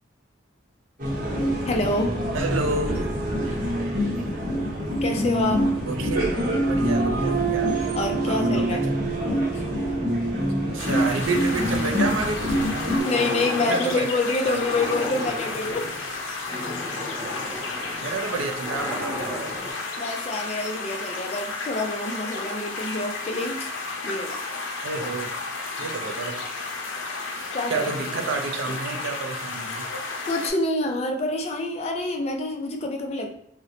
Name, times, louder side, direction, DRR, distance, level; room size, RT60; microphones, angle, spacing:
sound 1, 1.0-13.0, right 1 dB, 45° right, 0.8 m, -25 dB
voice 1, 1.7-2.1 5.0-5.7 7.9-8.9 9.5-9.6 13.0-15.9 16.7-16.8 17.7-17.9 20.0-23.7 24.0-24.4 27.5-27.9 28.7-28.8 30.2-33.3, left 2 dB, 30° left, 2 dB, 0.3 m, -27 dB
voice 2, 2.3-3.1 5.8-7.7 8.3-8.8 10.7-13.0 13.6-14.1 14.5-14.6 17.0-17.4 18.0-19.5 24.8-25.3 25.8-26.4 27.7-29.9, right 3 dB, 85° right, 4 dB, 0.5 m, -30 dB
sound 2, 10.8-30.5, left 3 dB, 80° left, 0.6 m, -33 dB
sound 3, 13.0-14.1 14.5-19.7, left 1 dB, ahead, 1.1 m, -34 dB
2.8 x 2.1 x 3.7 m, 0.72 s
head